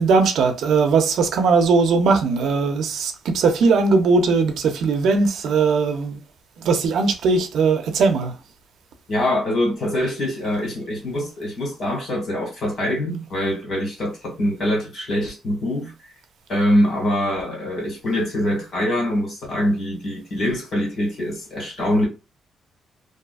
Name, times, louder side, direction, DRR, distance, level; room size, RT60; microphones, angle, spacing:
voice 1, 0.0-6.2 6.6-8.3, right 4 dB, 75° right, 0.5 m, -19 dB
voice 2, 9.1-15.9 16.5-22.1, left 1 dB, 50° left, 1.6 m, -24 dB
2.6 x 2.4 x 2.3 m
wide cardioid pair, 180°, 0 cm